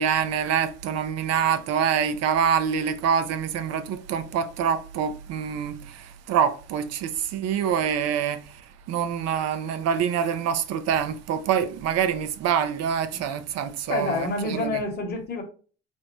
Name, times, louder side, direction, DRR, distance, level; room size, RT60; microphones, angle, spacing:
voice 1, 0.0-8.4 8.9-14.8, right 8 dB, 60° right, 0.6 m, -25 dB
voice 2, 13.9-15.4, left 3 dB, 35° left, 1.1 m, -28 dB
4.3 x 2.1 x 3.0 m
hypercardioid pair, 65°, 29 cm